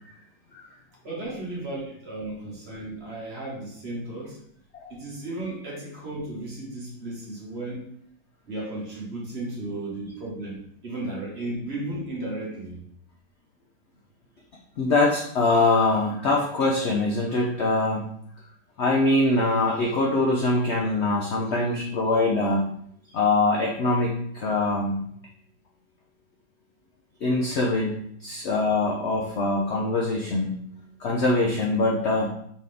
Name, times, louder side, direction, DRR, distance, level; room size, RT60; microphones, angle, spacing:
voice 1, 1.0-4.4 4.9-7.8 8.5-12.8, right 2 dB, 40° right, -4 dB, 1.4 m, -34 dB
voice 2, 14.8-18.1 18.8-22.6 23.1-25.0 27.2-30.5 31.0-32.3, left 2 dB, 65° left, -1 dB, 0.7 m, -23 dB
4.1 x 3.8 x 3.4 m, 0.66 s
omnidirectional pair, 1.8 m